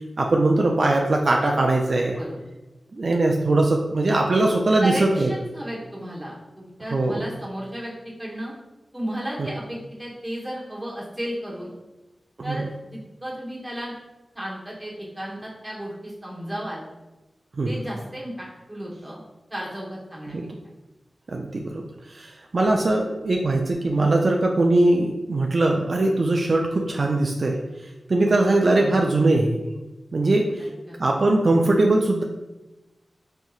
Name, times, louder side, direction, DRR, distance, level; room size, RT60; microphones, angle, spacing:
voice 1, 0.2-2.2 2.9-5.3 6.9-7.3 9.4-9.5 12.4-12.6 17.6-17.8 20.3-20.5 21.3-21.8 22.1-27.6 28.1-29.6 30.1-30.7 31.0-32.2, right 2 dB, 60° right, 1 dB, 0.3 m, -21 dB
voice 2, 4.8-7.9 8.2-8.5 8.9-11.7 12.4-12.6 12.9-13.9 14.3-16.8 17.6-19.2 19.5-20.4 30.9-31.0, equal, 10° right, -5 dB, 1.1 m, -33 dB
4.3 x 2.7 x 2.3 m, 1.1 s
wide cardioid pair, 60°, 0 cm